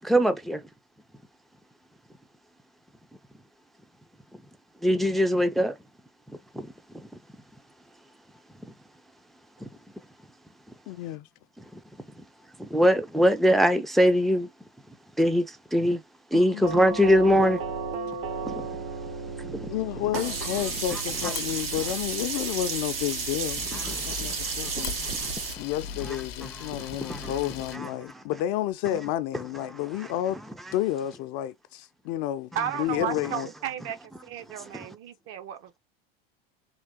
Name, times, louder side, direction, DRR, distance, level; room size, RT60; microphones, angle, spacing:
voice 1, 0.0-0.6 4.8-5.8 6.5-6.7 12.6-14.5 15.2-16.0 16.3-17.6 18.4-18.7 19.4-19.7 20.9-21.0 23.7-25.3 26.4-27.3 27.7-27.9 34.7-34.9, equal, ahead, 0.5 m, -23 dB
voice 2, 10.9-11.3 16.3-16.7 19.7-25.2 25.6-30.4 30.7-32.5 32.8-33.5, left 12 dB, 55° left, 0.6 m, -31 dB
Doorbell, 16.6-25.5, right 4 dB, 75° right, 1.4 m, -37 dB
Sink (filling or washing), 20.1-25.5, right 5 dB, 90° right, 1.7 m, -32 dB
Camera, 20.2-27.8, left 9 dB, 90° left, 0.7 m, -40 dB
voice 3, 32.5-34.0 34.2-35.8, right 9 dB, 50° right, 0.8 m, -33 dB
3.8 x 2.3 x 3.5 m
supercardioid pair, 110°, 29 cm